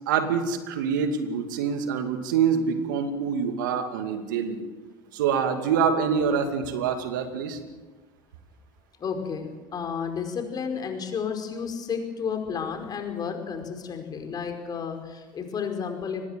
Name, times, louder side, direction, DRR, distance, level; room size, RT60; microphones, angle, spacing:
voice 1, 0.1-4.6 5.1-7.6, right 6 dB, 75° right, 7 dB, 2.5 m, -25 dB
voice 2, 9.0-16.2, left 6 dB, 40° left, 5 dB, 5.1 m, -32 dB
24.5 x 20.0 x 7.6 m, 1.3 s
hypercardioid pair, 70°, 11 cm